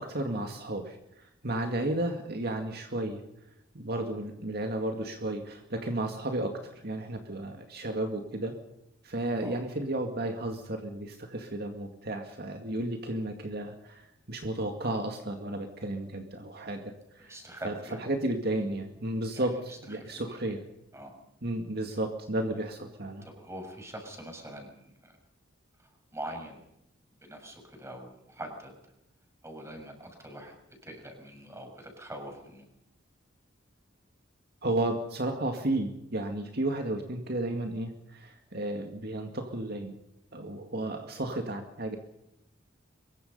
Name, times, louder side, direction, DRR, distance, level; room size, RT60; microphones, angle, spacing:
voice 1, 0.0-3.2 3.7-8.6 9.0-17.3 17.6-17.7 18.0-20.6 21.4-23.3 34.6-39.9 40.3-42.0, right 1 dB, 50° right, 4 dB, 2.2 m, -33 dB
voice 2, 17.2-18.0 19.3-20.2 20.9-21.1 23.2-25.2 25.8-26.6 27.2-28.7 29.4-30.6 30.8-32.6, right 1 dB, 15° right, 3 dB, 6.6 m, -44 dB
24.5 x 22.5 x 5.5 m, 0.83 s
head